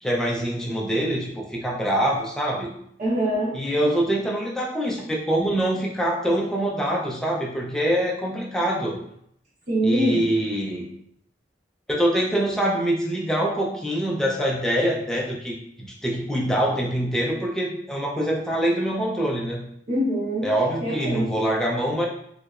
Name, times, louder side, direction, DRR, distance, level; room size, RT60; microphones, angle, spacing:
voice 1, 0.0-2.7 3.5-9.0 9.8-10.9 11.9-19.7 20.4-22.1, right 1 dB, 5° left, -3 dB, 0.5 m, -24 dB
voice 2, 3.0-3.5 9.7-10.3 19.9-20.5 20.8-21.3, equal, 45° right, -6 dB, 1.1 m, -24 dB
3.1 x 2.8 x 2.4 m, 0.70 s
head